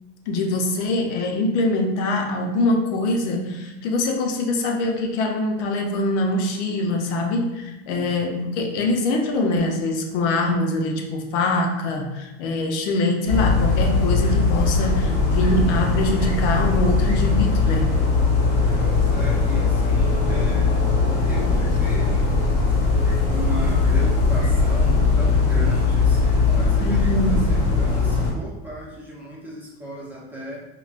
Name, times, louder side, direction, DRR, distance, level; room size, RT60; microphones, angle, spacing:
voice 1, 0.3-17.9 26.8-27.4, left 2 dB, 75° left, 2 dB, 0.7 m, -23 dB
sound 1, 13.3-28.3, left 4 dB, 50° left, 1.4 m, -20 dB
voice 2, 18.7-20.8 21.3-22.4 23.3-30.7, equal, 5° right, -7 dB, 0.7 m, -36 dB
4.8 x 2.2 x 2.4 m, 1.1 s
cardioid pair, 155°, 35 cm